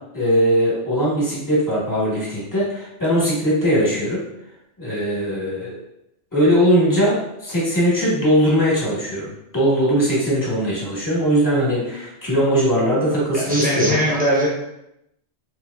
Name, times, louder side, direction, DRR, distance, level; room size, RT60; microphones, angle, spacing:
voice 1, 0.1-4.2 4.8-5.8 6.3-14.2, equal, 15° left, -6 dB, 1.1 m, -20 dB
voice 2, 13.3-14.5, equal, 10° right, -6 dB, 0.6 m, -20 dB
3.3 x 3.0 x 2.3 m, 0.83 s
omnidirectional pair, 1.2 m